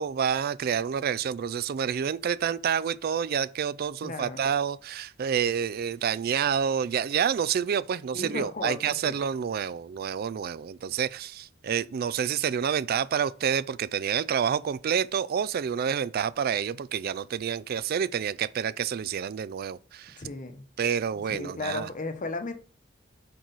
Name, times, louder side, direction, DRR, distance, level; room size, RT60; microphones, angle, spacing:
voice 1, 0.0-20.2 20.8-21.9, right 7 dB, 50° right, 0.3 m, -28 dB
voice 2, 4.0-4.4 8.1-9.2 20.2-20.6 21.4-22.5, left 3 dB, 40° left, 0.9 m, -35 dB
8.2 x 4.7 x 4.0 m
head